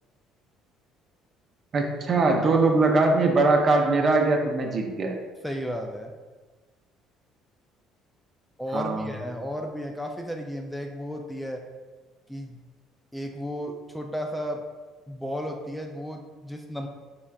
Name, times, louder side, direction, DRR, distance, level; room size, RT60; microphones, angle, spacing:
voice 1, 1.7-5.1 8.7-9.1, right 3 dB, 45° right, 2 dB, 0.6 m, -21 dB
voice 2, 5.4-6.1 8.6-11.6 12.3-12.6 13.1-14.6 15.1-16.9, equal, 5° left, 2 dB, 0.3 m, -33 dB
3.8 x 3.3 x 2.4 m, 1.3 s
supercardioid pair, 80°, 0 cm